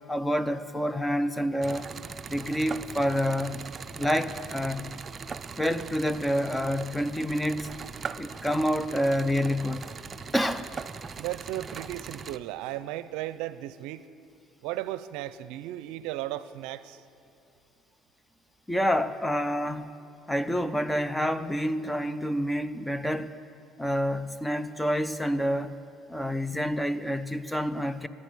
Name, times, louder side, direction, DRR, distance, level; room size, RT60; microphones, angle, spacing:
voice 1, 0.1-1.9 2.3-3.7 4.0-4.9 5.6-7.7 8.2-9.9 10.3-10.7 18.7-19.9 20.3-23.3 23.8-25.8 26.1-28.1, equal, 5° left, 0.6 m, -28 dB
sound 1, 1.6-12.4, right 5 dB, 30° right, 0.5 m, -40 dB
voice 2, 11.2-14.1 14.6-17.0, right 14 dB, 80° right, 0.5 m, -35 dB
14.5 x 9.9 x 9.8 m
supercardioid pair, 95°, 0 cm